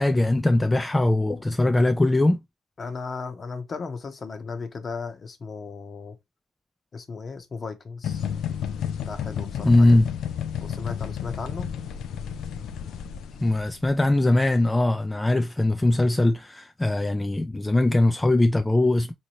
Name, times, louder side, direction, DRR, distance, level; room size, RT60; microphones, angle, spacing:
voice 1, 0.0-2.4 9.6-10.1 13.4-19.1, left 2 dB, 15° left, 0.3 m, -21 dB
voice 2, 2.8-6.2 6.9-8.3 9.0-10.0 10.6-11.7, left 4 dB, 40° left, 0.8 m, -35 dB
sound 1, 8.0-13.9, left 8 dB, 80° left, 0.4 m, -32 dB
3.9 x 2.8 x 2.9 m
cardioid pair, 90°, 0 cm